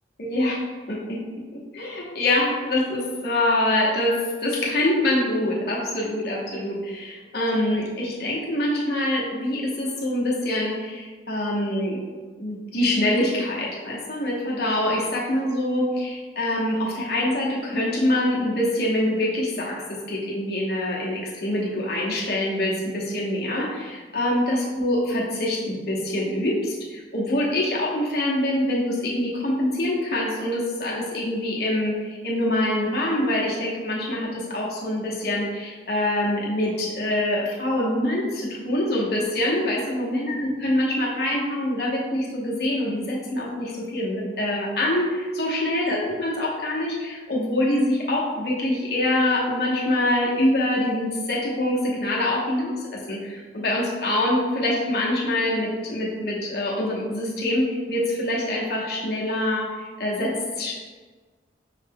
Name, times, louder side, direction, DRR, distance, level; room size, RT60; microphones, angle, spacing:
voice 1, 0.2-0.6 0.9-1.2 1.5-12.0 12.4-60.7, left 1 dB, 60° left, -4 dB, 1.0 m, -25 dB
5.6 x 2.2 x 3.4 m, 1.4 s
head